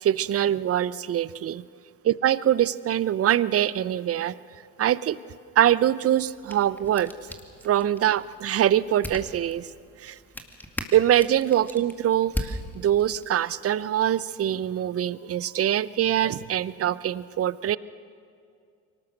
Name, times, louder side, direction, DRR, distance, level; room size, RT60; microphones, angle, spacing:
voice 1, 0.0-1.6 2.1-4.3 4.8-5.2 5.6-7.1 7.6-9.7 10.0-10.2 10.9-17.8, right 11 dB, 30° right, 19 dB, 0.6 m, -23 dB
sound 1, 6.2-13.3, equal, 5° left, 2.2 m, -39 dB
24.0 x 19.0 x 6.6 m, 2.3 s
hypercardioid pair, 65°, 45 cm